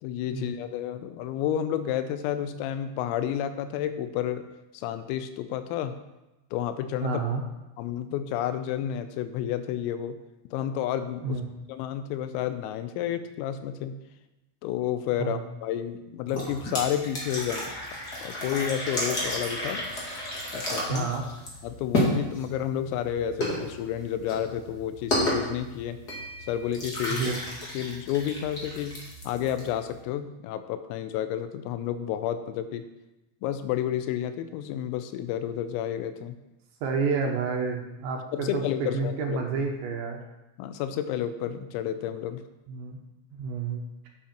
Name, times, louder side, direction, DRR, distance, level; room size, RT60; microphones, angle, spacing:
voice 1, 0.0-4.5 4.7-6.0 6.5-7.2 7.8-10.2 10.5-11.4 11.7-14.0 14.6-17.7 18.2-19.8 20.5-21.1 21.6-26.0 26.4-27.2 27.7-29.0 29.2-32.8 33.4-36.4 38.3-39.4 40.6-42.4, left 10 dB, 90° left, 10 dB, 3.4 m, -30 dB
voice 2, 7.0-7.4 11.2-11.4 15.2-15.4 20.9-21.3 27.1-27.4 36.8-40.2 42.7-43.0 43.4-43.9, right 5 dB, 70° right, 1 dB, 3.0 m, -29 dB
sound 1, 16.2-30.0, equal, 65° left, 0.9 m, -32 dB
10.5 x 8.7 x 4.5 m, 0.98 s
omnidirectional pair, 5.9 m